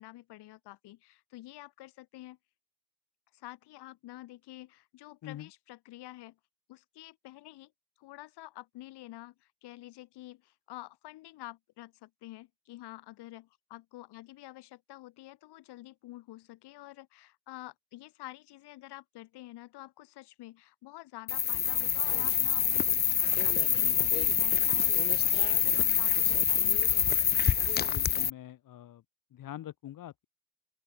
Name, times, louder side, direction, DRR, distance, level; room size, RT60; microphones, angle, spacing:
voice 1, 0.0-2.4 3.3-6.4 6.7-7.7 8.0-26.9, left 16 dB, 65° left, 5.3 m, -49 dB
sound 1, 21.3-28.3, left 8 dB, 25° left, 0.6 m, -26 dB
voice 2, 27.8-29.0 29.3-30.2, left 12 dB, 50° left, 1.6 m, -44 dB
open air
hypercardioid pair, 65°, 43 cm